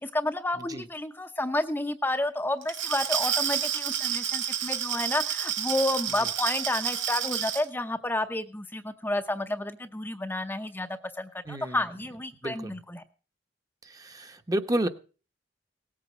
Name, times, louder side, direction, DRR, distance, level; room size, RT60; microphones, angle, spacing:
voice 1, 0.0-10.9 11.2-13.0, left 1 dB, 10° left, 5 dB, 0.7 m, -30 dB
Glass, 2.6-7.6, right 9 dB, 85° right, 1.6 m, -29 dB
voice 2, 11.4-11.8 12.4-12.8 13.8-14.9, right 1 dB, 20° right, 7 dB, 1.0 m, -31 dB
18.0 x 8.4 x 6.0 m, 0.37 s
head